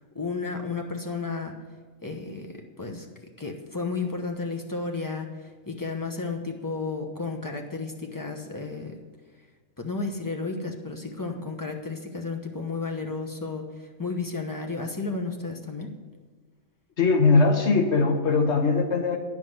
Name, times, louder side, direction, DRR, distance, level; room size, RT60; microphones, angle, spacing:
voice 1, 0.0-1.5 2.0-3.1 3.4-9.0 9.8-15.9, left 4 dB, 15° left, 2 dB, 0.9 m, -33 dB
voice 2, 17.0-19.2, left 4 dB, 60° left, 5 dB, 1.2 m, -20 dB
9.6 x 5.5 x 7.9 m, 1.5 s
omnidirectional pair, 1.4 m